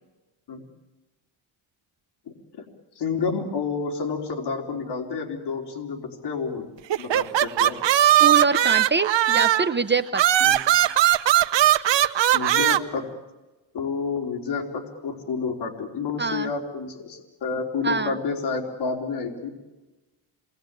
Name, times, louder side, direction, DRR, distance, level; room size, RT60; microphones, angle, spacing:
voice 1, 3.0-6.7 7.0-7.8 10.4-10.5 12.3-13.0 13.7-19.5, left 5 dB, 55° left, 3 dB, 3.8 m, -29 dB
sound 1, 6.9-9.7 10.1-12.8, right 12 dB, 65° right, 1.2 m, -19 dB
voice 2, 8.2-10.2 16.2-16.5 17.8-18.1, right 4 dB, 25° right, 10 dB, 0.8 m, -24 dB
28.0 x 21.0 x 9.0 m, 1.1 s
cardioid pair, 120°, 47 cm